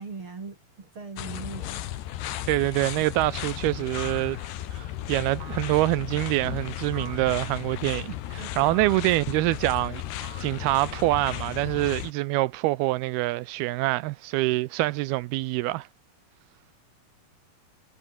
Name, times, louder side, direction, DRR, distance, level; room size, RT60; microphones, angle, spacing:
voice 1, 0.0-1.8 8.4-8.7, right 4 dB, 35° right, 3.9 m, -40 dB
sound 1, 1.2-12.1, left 13 dB, 90° left, 3.7 m, -35 dB
sound 2, 2.3-2.7 4.0-4.7 5.4-6.0 6.9-7.5 8.7-9.2 10.2-11.0, right 5 dB, 55° right, 6.3 m, -46 dB
voice 2, 2.5-4.4 4.7-15.9, right 18 dB, 80° right, 2.5 m, -25 dB
omnidirectional pair, 4.7 m